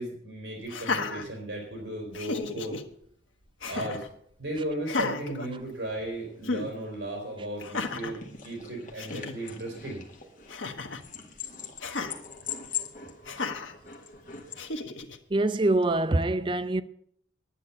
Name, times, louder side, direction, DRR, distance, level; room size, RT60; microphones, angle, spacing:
voice 1, 0.0-2.8 3.7-4.0 4.4-8.2 8.4-10.0, right 1 dB, 65° right, 3.7 m, -35 dB
Laughter, 0.7-1.8 2.1-2.8 3.6-4.1 4.8-6.1 6.4-6.7 7.6-8.2 8.7-8.8 9.0-9.4 10.5-11.1 11.8-12.1 13.3-13.7 14.6-15.2, left 3 dB, 90° left, 1.2 m, -33 dB
sound 1, 5.1-5.2 5.5-5.6 5.8-14.7, left 7 dB, 40° left, 1.6 m, -41 dB
voice 2, 15.3-16.8, right 2 dB, 25° right, 0.4 m, -25 dB
10.0 x 9.8 x 7.0 m
head